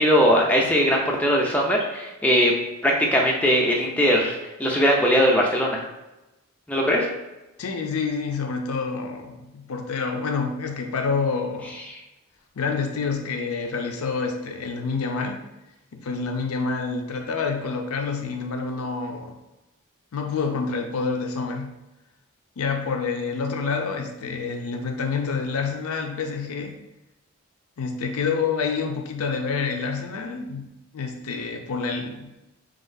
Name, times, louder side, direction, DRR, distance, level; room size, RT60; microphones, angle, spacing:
voice 1, 0.0-2.5 2.8-5.8 6.7-7.1 11.9-12.0, equal, 5° left, -1 dB, 0.4 m, -20 dB
voice 2, 7.6-11.7 12.6-15.4 15.9-19.4 20.1-21.8 22.6-26.8 27.8-32.4, left 4 dB, 80° left, 4 dB, 0.5 m, -28 dB
3.8 x 3.6 x 2.6 m, 1.0 s
head